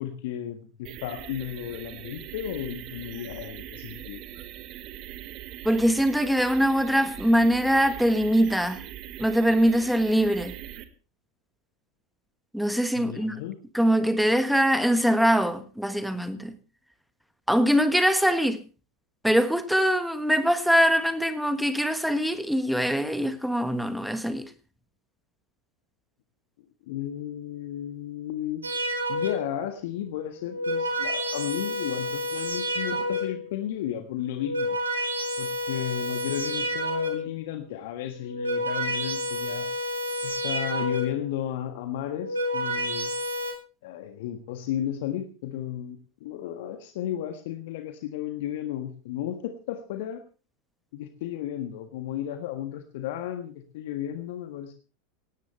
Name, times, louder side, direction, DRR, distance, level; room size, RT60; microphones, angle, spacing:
voice 1, 0.0-4.2 12.9-13.6 26.9-34.8 35.4-39.7 40.2-43.1 43.8-50.2 50.9-54.7, left 11 dB, 60° left, 1.5 m, -34 dB
sound 1, 0.8-10.8, right 12 dB, 45° right, 1.6 m, -41 dB
voice 2, 5.6-8.8 9.2-10.5 12.5-13.4 13.7-16.5 17.5-18.6 19.2-24.5, equal, ahead, 1.5 m, -23 dB
sound 2, 28.6-29.6 30.3-33.5 34.2-37.4 38.1-41.3 42.1-43.5, equal, 80° right, 3.5 m, -29 dB
18.0 x 17.5 x 3.3 m
figure-of-eight pair, 85°, 0 cm